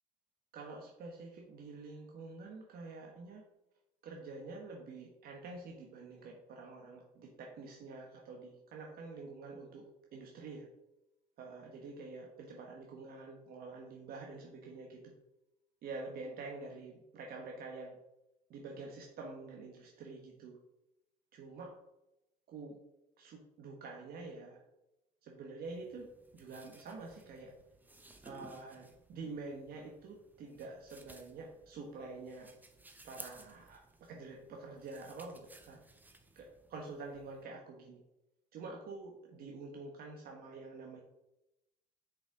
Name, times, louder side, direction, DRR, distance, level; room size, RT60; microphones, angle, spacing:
voice 1, 0.5-3.4 4.0-9.9 10.1-10.7 11.4-15.1 15.8-18.0 18.5-20.6 21.3-21.7 22.5-22.8 23.2-24.6 25.2-26.1 26.3-27.5 28.2-32.5 33.0-33.8 34.1-35.8 36.3-38.0 38.5-41.0, right 3 dB, 65° right, 0 dB, 1.2 m, -47 dB
sound 1, 25.6-37.4, right 2 dB, 10° right, 0.9 m, -58 dB
6.3 x 5.1 x 4.8 m, 0.92 s
cardioid pair, 110°, 17 cm